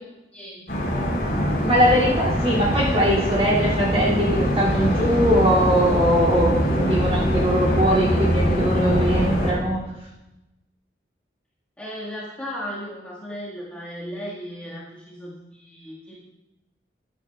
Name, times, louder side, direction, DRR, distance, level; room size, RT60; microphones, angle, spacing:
voice 1, 0.3-0.8 8.1-8.2 8.5-8.6 11.8-16.2, equal, 5° left, -9 dB, 1.8 m, -36 dB
sound 1, 0.7-9.5, equal, 60° left, 3.8 m, -23 dB
voice 2, 1.6-9.8, equal, 35° right, -7 dB, 2.8 m, -21 dB
14.0 x 9.5 x 2.4 m, 0.98 s
head